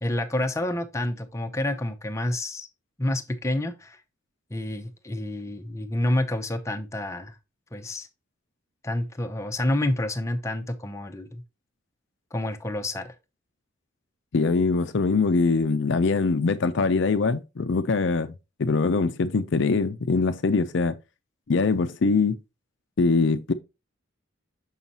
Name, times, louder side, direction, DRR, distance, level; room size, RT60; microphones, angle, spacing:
voice 1, 0.0-2.7 3.0-4.0 4.5-7.4 7.7-8.1 8.8-11.4 12.3-13.1, left 1 dB, 15° left, 0.6 m, -28 dB
voice 2, 14.3-18.3 18.6-20.9 21.5-22.4 23.0-23.5, left 4 dB, 60° left, 0.5 m, -23 dB
6.3 x 5.5 x 2.8 m
head